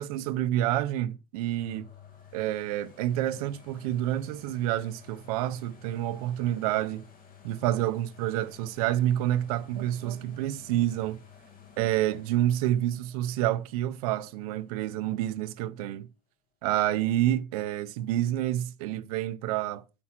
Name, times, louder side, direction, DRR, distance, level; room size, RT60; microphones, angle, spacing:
voice 1, 0.0-1.9 2.3-7.0 7.4-11.2 11.8-16.1 16.6-19.8, right 13 dB, 30° right, 0.4 m, -28 dB
sound 1, 1.6-15.3 15.8-15.9, left 7 dB, 20° left, 1.6 m, -54 dB
8.6 x 4.7 x 5.9 m
supercardioid pair, 165°, 42 cm